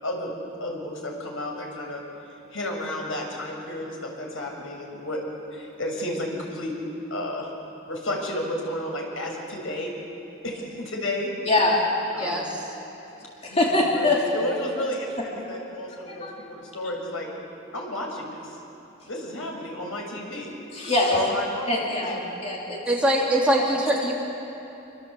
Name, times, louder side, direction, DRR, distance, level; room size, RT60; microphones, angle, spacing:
voice 1, 0.0-0.3 0.6-2.0 2.5-5.2 5.5-6.7 7.1-7.5 7.9-9.9 10.4-11.3 12.1-12.5 13.5-17.3 17.7-18.5 19.1-20.5 21.0-21.8 22.0-22.2, left 1 dB, 80° left, 0 dB, 6.6 m, -32 dB
voice 2, 11.5-11.8 12.2-12.5 13.4-14.2 16.1-16.3 20.7-21.2 21.7-22.8, left 2 dB, 30° left, -3 dB, 3.2 m, -23 dB
voice 3, 12.2-12.5 22.9-24.1, right 1 dB, 5° right, -4 dB, 3.6 m, -22 dB
28.0 x 25.5 x 8.2 m, 3.0 s
head